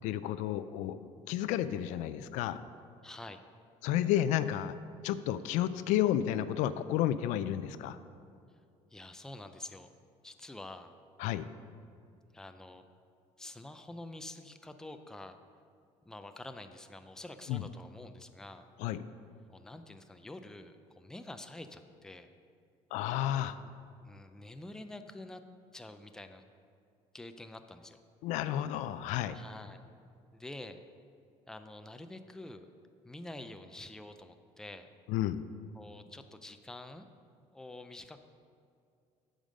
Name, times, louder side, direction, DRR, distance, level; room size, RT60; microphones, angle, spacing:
voice 1, 0.0-2.6 3.8-4.7 5.0-8.0 11.2-11.5 17.5-17.6 18.8-19.0 22.9-23.6 28.2-29.4 35.1-35.4, left 12 dB, 85° left, 13 dB, 0.4 m, -31 dB
voice 2, 3.0-3.4 8.9-9.9 10.2-10.9 12.3-12.8 13.4-15.4 16.1-18.7 19.5-22.3 23.3-23.7 24.0-25.4 25.7-26.4 27.1-28.0 29.3-29.8 30.3-30.8 31.5-32.7 33.0-34.9 35.7-37.1 37.5-38.2, left 2 dB, 5° left, 8 dB, 0.4 m, -47 dB
8.9 x 5.1 x 6.3 m, 2.4 s
cardioid pair, 135°, 12 cm